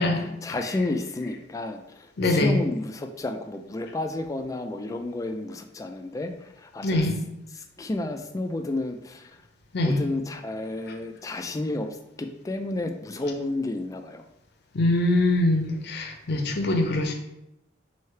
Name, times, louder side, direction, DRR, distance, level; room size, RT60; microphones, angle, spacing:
voice 1, 0.4-7.1 7.5-9.4 9.8-11.9 12.2-14.2, left 2 dB, 15° left, 5 dB, 0.3 m, -31 dB
voice 2, 2.2-2.6 6.8-7.2 9.7-10.0 14.7-17.1, left 2 dB, 60° left, 4 dB, 0.6 m, -23 dB
3.2 x 2.8 x 4.3 m, 0.88 s
head